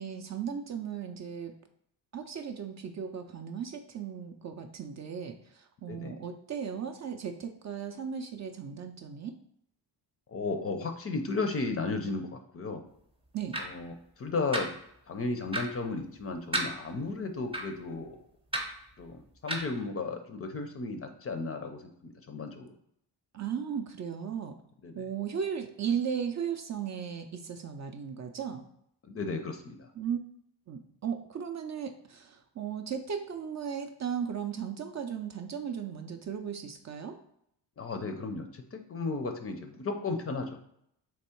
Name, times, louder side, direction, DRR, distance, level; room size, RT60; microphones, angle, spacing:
voice 1, 0.0-1.5 2.1-9.4 13.3-13.6 23.3-24.6 24.9-28.7 30.0-30.2 30.7-37.2, right 7 dB, 40° right, 6 dB, 0.4 m, -36 dB
voice 2, 10.3-12.8 13.6-14.7 15.1-18.2 19.0-22.7 24.8-25.0 29.1-29.8 37.8-40.5, left 3 dB, 35° left, 5 dB, 0.4 m, -34 dB
sound 1, 13.5-13.6 14.5-14.6 15.5-15.7 16.5-16.7 17.5-17.6 18.5-18.6 19.5-19.7, right 1 dB, 15° right, 0.7 m, -30 dB
3.6 x 3.0 x 4.3 m, 0.73 s
cardioid pair, 125°, 43 cm